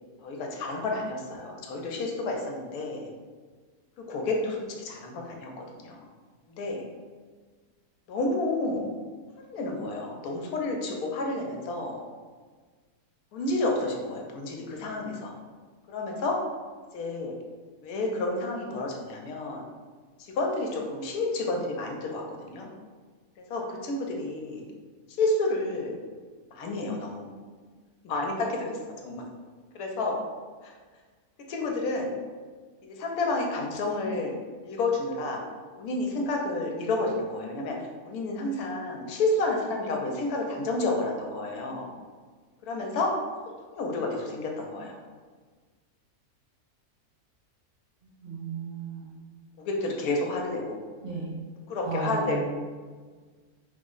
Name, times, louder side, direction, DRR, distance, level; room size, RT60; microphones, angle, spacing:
voice 1, 0.2-3.1 4.1-6.1 6.5-6.8 8.1-8.9 9.5-12.0 13.3-15.3 15.9-16.4 16.9-17.3 17.8-19.7 20.3-22.7 23.5-24.6 25.2-26.0 26.6-27.3 28.0-28.8 29.0-29.2 29.7-30.1 30.6-30.7 31.5-32.1 32.8-34.4 34.6-35.4 35.8-41.9 42.6-43.1 43.7-45.0 49.6-50.8 51.7-52.4, left 2 dB, 85° left, 1 dB, 1.1 m, -30 dB
voice 2, 48.0-49.1 51.0-51.3 51.8-52.4, right 4 dB, 50° right, -10 dB, 1.6 m, -34 dB
3.1 x 2.0 x 3.7 m, 1.5 s
omnidirectional pair, 1.6 m